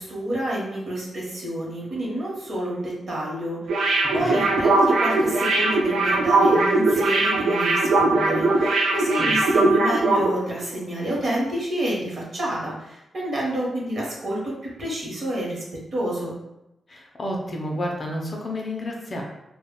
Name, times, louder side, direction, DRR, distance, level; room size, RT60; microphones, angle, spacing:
voice 1, 0.0-15.6 15.9-16.3, right 1 dB, 45° right, -4 dB, 0.8 m, -29 dB
sound 1, 3.7-10.3 10.6-10.7, right 2 dB, 75° right, 0.4 m, -20 dB
voice 2, 16.9-19.2, left 1 dB, 30° left, 0 dB, 0.4 m, -30 dB
2.1 x 2.0 x 3.5 m, 0.90 s
wide cardioid pair, 165°, 0 cm